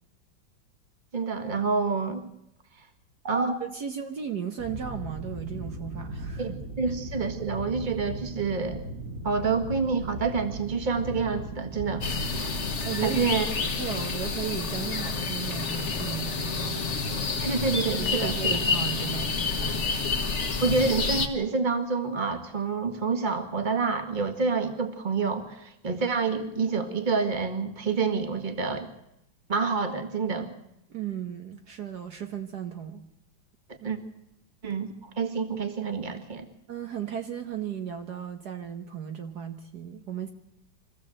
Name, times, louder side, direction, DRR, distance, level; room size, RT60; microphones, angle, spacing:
voice 1, 1.1-2.2 3.2-3.6 6.4-8.8 9.2-12.0 13.0-13.5 17.4-18.6 20.6-28.9 29.5-30.5 33.8-34.0 34.6-36.5, right 4 dB, 25° right, 7 dB, 1.8 m, -28 dB
voice 2, 3.6-6.6 6.8-6.9 12.8-16.9 18.0-20.0 20.2-20.5 30.9-33.0 33.8-33.9 36.7-40.3, right 8 dB, 60° right, 5 dB, 1.7 m, -36 dB
sound 1, 4.6-12.8, right 1 dB, 45° right, 1.9 m, -37 dB
sound 2, 12.0-21.3, left 4 dB, 40° left, 1.7 m, -29 dB
24.5 x 15.0 x 7.8 m, 0.84 s
omnidirectional pair, 2.1 m